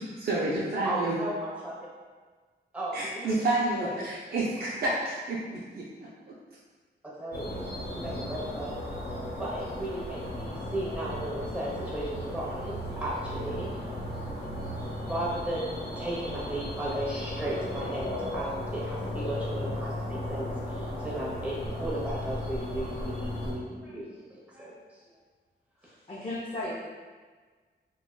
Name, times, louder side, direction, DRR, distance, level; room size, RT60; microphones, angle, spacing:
voice 1, 0.0-1.2 2.9-5.9 6.3-6.4, right 2 dB, 55° right, -6 dB, 0.5 m, -29 dB
voice 2, 0.8-1.8 2.7-3.3 3.8-4.1 7.0-7.6 7.9-8.8 9.4-13.7 15.0-25.0 25.8-25.9, right 1 dB, 5° right, -6 dB, 0.8 m, -35 dB
sound 1, 7.3-23.5, left 1 dB, 60° left, 0.9 m, -35 dB
voice 3, 26.1-26.7, left 1 dB, 30° left, -9 dB, 0.5 m, -34 dB
3.5 x 2.3 x 2.2 m, 1.4 s
wide cardioid pair, 100°, 18 cm